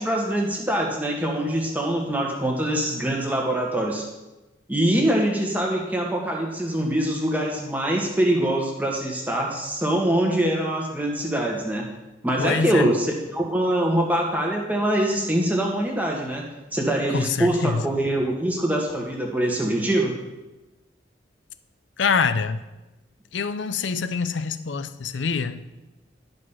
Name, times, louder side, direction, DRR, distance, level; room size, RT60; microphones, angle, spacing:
voice 1, 0.0-4.0 4.7-11.8 12.2-16.4 16.7-20.1, right 1 dB, 10° right, -1 dB, 1.5 m, -24 dB
voice 2, 12.4-12.9 17.1-17.9 22.0-22.6 23.3-25.6, left 5 dB, 80° left, 12 dB, 0.6 m, -25 dB
11.5 x 5.3 x 5.6 m, 1.1 s
head